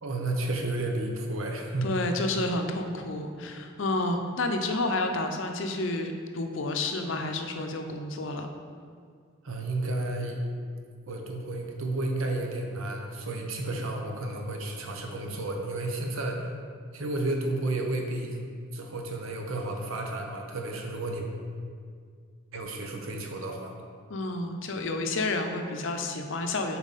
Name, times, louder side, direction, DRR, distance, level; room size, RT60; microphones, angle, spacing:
voice 1, 0.0-1.9 9.4-10.4 11.1-16.4 16.9-18.4 18.7-21.3 22.5-23.7, right 2 dB, 90° right, 2 dB, 0.9 m, -32 dB
voice 2, 1.8-8.5 24.1-26.8, left 2 dB, 65° left, 5 dB, 0.6 m, -30 dB
7.2 x 4.4 x 4.1 m, 2.1 s
head